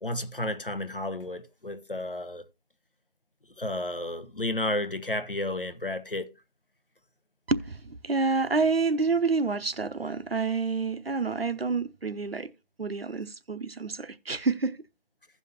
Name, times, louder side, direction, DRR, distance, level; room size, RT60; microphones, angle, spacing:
voice 1, 0.0-2.4 3.6-6.3, left 1 dB, 65° left, 1.0 m, -32 dB
voice 2, 7.5-12.5 12.8-14.8, right 4 dB, 80° right, 0.8 m, -28 dB
16.0 x 5.7 x 2.8 m
figure-of-eight pair, 175°, 29 cm